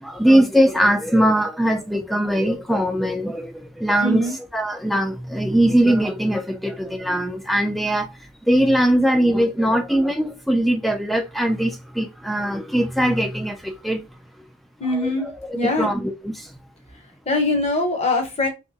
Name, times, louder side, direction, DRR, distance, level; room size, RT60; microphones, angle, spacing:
voice 1, 0.0-8.1 8.5-14.0 14.9-16.5, right 1 dB, ahead, 0.3 m, -21 dB
voice 2, 4.0-4.3 14.8-15.3 15.5-15.9 17.3-18.5, left 2 dB, 25° left, 0.8 m, -22 dB
3.5 x 2.9 x 2.7 m
head